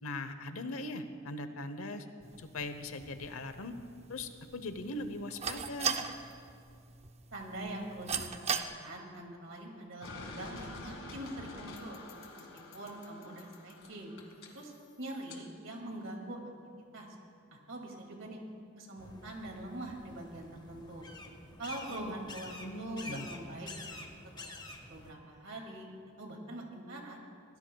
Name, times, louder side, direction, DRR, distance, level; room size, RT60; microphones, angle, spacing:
voice 1, 0.0-2.1 2.4-3.7 4.1-6.0 21.9-22.1 22.6-23.3, left 2 dB, 80° left, 9 dB, 0.9 m, -40 dB
sound 1, 2.2-8.6, right 6 dB, 30° right, 0.6 m, -39 dB
voice 2, 7.3-8.4 8.7-12.0 12.4-12.5 12.7-14.1 14.5-14.7 15.0-16.5 16.9-17.2 17.5-18.4 18.7-21.1 21.6-24.0 24.4-24.6 24.9-25.9 26.2-27.2, right 1 dB, 65° right, 1 dB, 2.4 m, -43 dB
sound 2, 10.0-15.4, left 2 dB, 60° left, 1.8 m, -48 dB
sound 3, 19.0-25.1, left 2 dB, 20° left, 0.9 m, -48 dB
23.0 x 16.5 x 2.3 m, 2.5 s
head